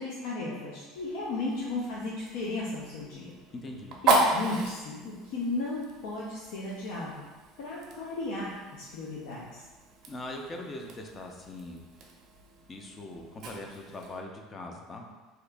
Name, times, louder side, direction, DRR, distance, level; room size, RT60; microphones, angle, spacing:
voice 1, 0.0-3.3 4.0-7.2 7.6-9.6, left 2 dB, 75° left, -6 dB, 0.5 m, -35 dB
Fire, 0.9-14.2, right 3 dB, 45° right, 0.5 m, -35 dB
voice 2, 3.5-4.0 10.1-11.8 12.7-15.1, left 2 dB, 20° left, 2 dB, 0.4 m, -41 dB
2.8 x 2.4 x 3.4 m, 1.3 s
cardioid pair, 155°, 0 cm